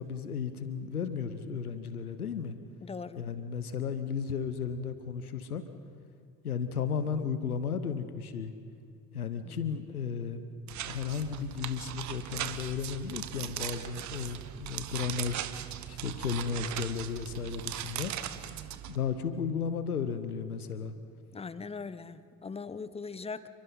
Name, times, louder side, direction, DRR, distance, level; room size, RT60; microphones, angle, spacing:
voice 1, 0.0-2.6 3.2-5.6 6.4-8.5 9.1-10.4 10.8-15.4 15.9-18.1 18.9-20.9, left 6 dB, 80° left, 11 dB, 1.1 m, -34 dB
voice 2, 2.8-3.2 9.4-9.6 21.3-23.5, left 5 dB, 15° left, 15 dB, 0.9 m, -40 dB
sound 1, 10.7-19.0, right 11 dB, 40° right, 1.3 m, -39 dB
29.5 x 23.0 x 5.6 m, 2.2 s
figure-of-eight pair, 60°, 44 cm